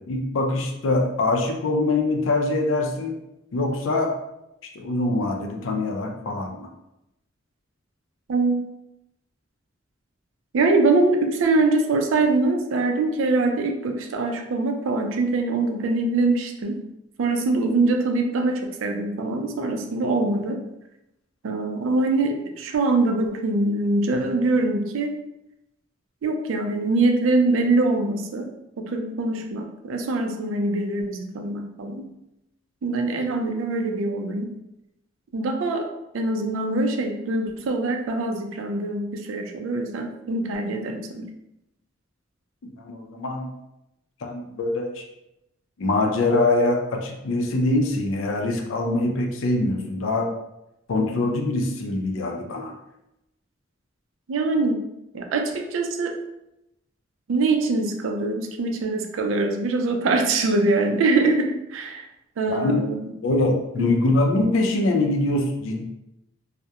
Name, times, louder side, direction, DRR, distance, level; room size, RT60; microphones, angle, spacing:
voice 1, 0.1-3.2 3.5-4.2 4.8-6.7 42.6-43.5 44.2-45.0 45.8-50.3 50.9-52.7 62.5-62.8 63.2-65.8, left 2 dB, 90° left, 3 dB, 0.4 m, -23 dB
voice 2, 8.3-8.6 10.5-16.8 17.2-20.6 21.4-25.2 26.2-28.5 28.8-32.1 32.8-34.5 35.3-35.9 36.1-41.3 54.3-54.8 55.1-56.2 57.3-62.1 62.4-63.0 63.8-63.9, right 3 dB, 90° right, 4 dB, 0.4 m, -23 dB
2.3 x 2.0 x 2.7 m, 0.88 s
head